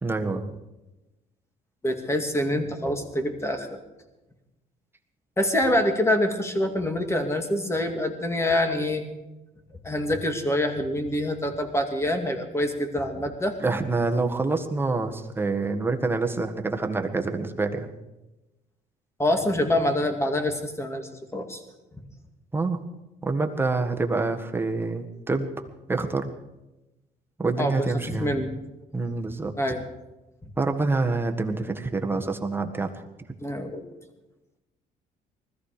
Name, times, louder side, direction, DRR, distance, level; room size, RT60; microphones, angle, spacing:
voice 1, 0.0-0.6 13.6-17.9 22.5-22.8 23.2-25.5 25.9-26.3 27.4-28.4 28.9-29.5 30.6-32.9, right 3 dB, 15° right, 4 dB, 1.6 m, -26 dB
voice 2, 1.8-3.8 5.4-9.0 9.8-13.5 19.2-21.6 27.6-28.5 29.6-29.8 33.4-33.8, left 1 dB, 15° left, 6 dB, 2.4 m, -26 dB
20.0 x 14.0 x 5.1 m, 1.0 s
cardioid pair, 110°, 17 cm